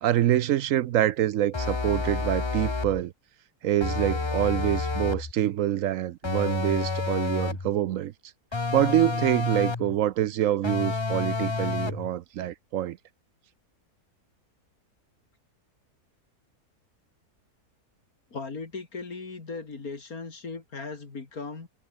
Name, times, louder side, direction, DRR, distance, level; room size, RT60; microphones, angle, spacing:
voice 1, 0.0-3.1 3.6-8.1 8.5-13.0, right 12 dB, 65° right, 0.9 m, -26 dB
sound 1, 1.5-3.0 3.8-5.3 6.2-7.7 8.5-10.0 10.6-12.1, left 3 dB, 20° left, 0.8 m, -29 dB
voice 2, 18.3-21.7, left 4 dB, 65° left, 3.3 m, -37 dB
omnidirectional pair, 1.7 m